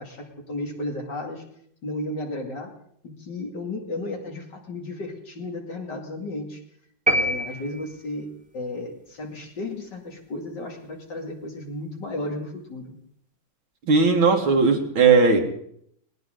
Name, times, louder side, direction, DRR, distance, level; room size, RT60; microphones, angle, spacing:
voice 1, 0.0-1.4 1.8-2.7 3.0-6.6 7.1-12.9, left 2 dB, 55° left, 2 dB, 3.1 m, -34 dB
sound 1, 7.1-8.3, right 1 dB, 5° right, 1.3 m, -25 dB
voice 2, 13.9-15.4, right 4 dB, 75° right, 3 dB, 2.7 m, -17 dB
20.0 x 19.0 x 3.9 m, 0.68 s
omnidirectional pair, 2.2 m